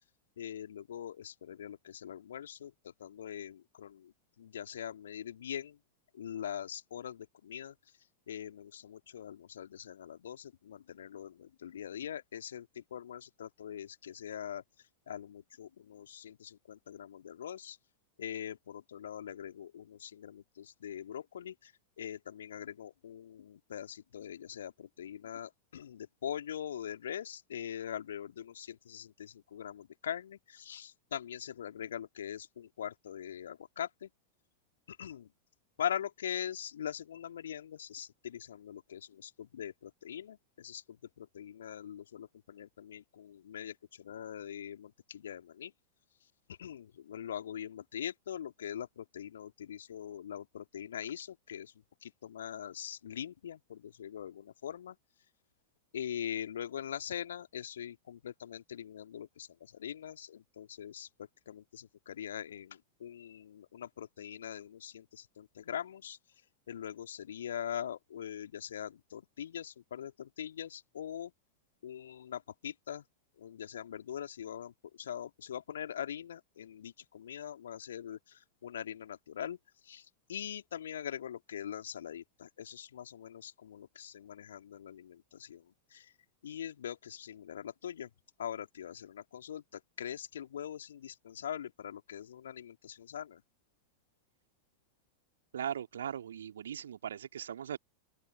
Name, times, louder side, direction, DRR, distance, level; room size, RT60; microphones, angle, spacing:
voice 1, 0.4-2.7 3.0-4.0 4.4-5.7 6.2-7.7 8.3-12.7 12.9-14.6 15.1-17.8 18.2-21.5 22.0-34.1 35.0-35.3 35.8-40.4 40.6-40.8 41.2-43.7 44.0-45.7 46.6-51.7 52.0-54.9 55.9-59.5 59.8-61.1 61.5-66.2 66.7-71.3 71.8-73.0 73.4-74.7 75.0-78.2 78.6-79.6 79.9-80.0 80.3-85.6 85.9-86.0 86.4-88.1 88.4-89.6 90.0-93.4, left 9 dB, 65° left, 1.9 m, -42 dB
voice 2, 95.5-97.8, right 9 dB, 65° right, 2.6 m, -39 dB
open air
figure-of-eight pair, 90°, 0 cm